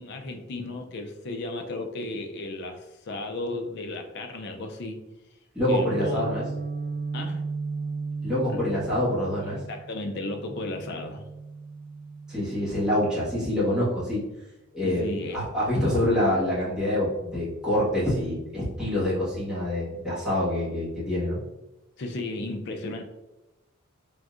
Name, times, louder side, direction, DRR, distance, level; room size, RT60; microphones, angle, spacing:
voice 1, 0.0-5.0 5.7-6.3 7.1-7.4 8.5-8.6 9.7-11.3 14.8-15.4 22.0-23.0, left 2 dB, 55° left, 4 dB, 0.4 m, -34 dB
voice 2, 5.5-6.4 8.2-9.6 12.3-14.2 14.7-15.1 15.3-21.4, left 1 dB, 5° right, -10 dB, 1.3 m, -26 dB
Guitar, 5.9-13.7, right 4 dB, 15° left, 1.3 m, -36 dB
3.6 x 2.7 x 2.4 m, 0.99 s
head